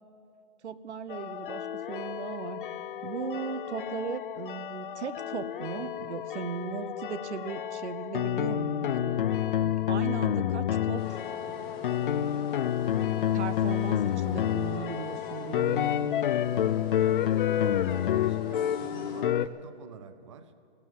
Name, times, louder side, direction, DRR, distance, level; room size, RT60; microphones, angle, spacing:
voice 1, 0.6-2.6 3.0-9.2 9.6-11.6 12.1-12.3 13.3-16.1, right 7 dB, 80° right, 15 dB, 0.9 m, -38 dB
sound 1, 1.1-19.5, left 11 dB, 55° left, 0.4 m, -29 dB
sound 2, 11.0-19.2, left 3 dB, 15° left, 1.5 m, -45 dB
voice 2, 16.9-20.5, right 5 dB, 30° right, 11 dB, 0.4 m, -47 dB
16.5 x 11.5 x 7.5 m, 2.6 s
hypercardioid pair, 160°, 33 cm